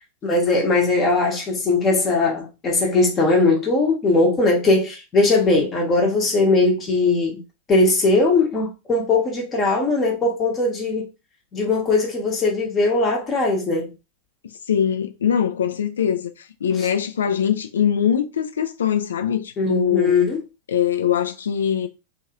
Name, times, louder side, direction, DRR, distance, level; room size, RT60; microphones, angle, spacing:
voice 1, 0.2-7.4 7.7-11.1 11.5-13.9 19.6-20.4, left 3 dB, 25° left, 0.9 m, -19 dB
voice 2, 14.7-16.3 16.6-20.1 20.7-21.9, left 9 dB, 65° left, 0.4 m, -22 dB
2.8 x 2.4 x 2.8 m
figure-of-eight pair, 90°, 0 cm